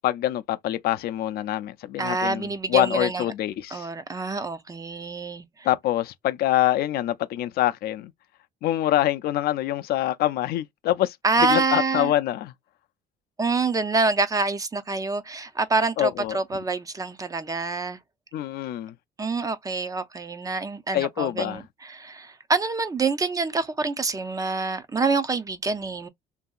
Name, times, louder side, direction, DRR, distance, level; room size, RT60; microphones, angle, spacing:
voice 1, 0.0-3.9 5.6-8.1 8.6-12.5 16.0-16.4 18.3-18.9 20.9-21.6, left 13 dB, 65° left, 0.4 m, -25 dB
voice 2, 2.0-3.2 3.7-5.7 11.2-12.1 13.4-18.0 19.2-26.1, right 3 dB, 20° right, 0.4 m, -26 dB
2.8 x 2.6 x 2.3 m
cardioid pair, 110°, 17 cm